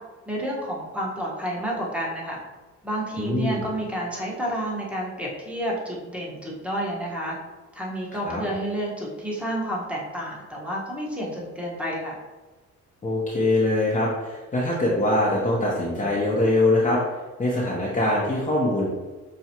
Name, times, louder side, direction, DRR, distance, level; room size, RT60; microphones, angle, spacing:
voice 1, 0.3-2.4 2.8-7.4 7.7-12.1, right 1 dB, 5° right, -4 dB, 1.1 m, -30 dB
voice 2, 3.2-3.6 8.2-8.4 13.0-17.0 17.4-18.9, left 1 dB, 25° left, -6 dB, 0.8 m, -23 dB
5.9 x 2.3 x 2.8 m, 1.3 s
cardioid pair, 90°, 30 cm